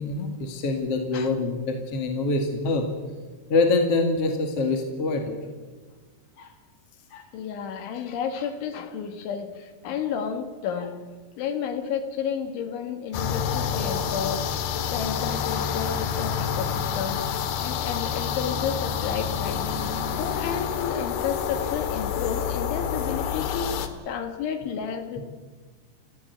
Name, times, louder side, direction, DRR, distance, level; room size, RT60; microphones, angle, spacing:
voice 1, 0.0-2.9 3.5-5.4 6.4-6.5 7.1-7.2, left 3 dB, 45° left, 4 dB, 2.3 m, -25 dB
voice 2, 7.3-11.0 11.4-19.7 20.2-25.2, left 7 dB, 80° left, 7 dB, 4.4 m, -32 dB
sound 1, 13.1-23.9, left 8 dB, 65° left, 3.0 m, -28 dB
29.5 x 15.5 x 8.0 m, 1.4 s
omnidirectional pair, 5.4 m